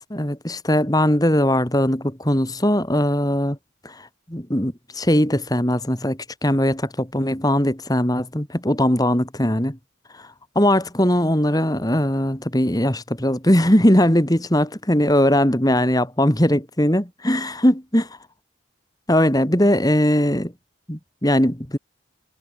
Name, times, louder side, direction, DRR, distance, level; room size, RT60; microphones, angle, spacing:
voice 1, 0.1-3.6 3.8-9.8 10.5-18.1 19.1-20.5 20.9-21.8, left 1 dB, 20° left, 2.8 m, -20 dB
head